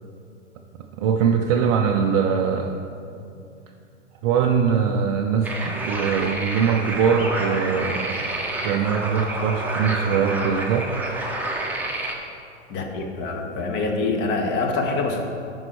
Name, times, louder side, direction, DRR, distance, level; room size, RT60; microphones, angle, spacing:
voice 1, 1.0-2.8 4.2-8.3 8.6-10.9 13.0-13.1, right 7 dB, 30° right, 2 dB, 0.4 m, -22 dB
sound 1, 5.4-12.2, right 1 dB, 5° right, 0.9 m, -29 dB
voice 2, 12.7-15.2, left 3 dB, 30° left, 2 dB, 1.2 m, -25 dB
9.6 x 5.3 x 4.6 m, 2.5 s
figure-of-eight pair, 105°, 37 cm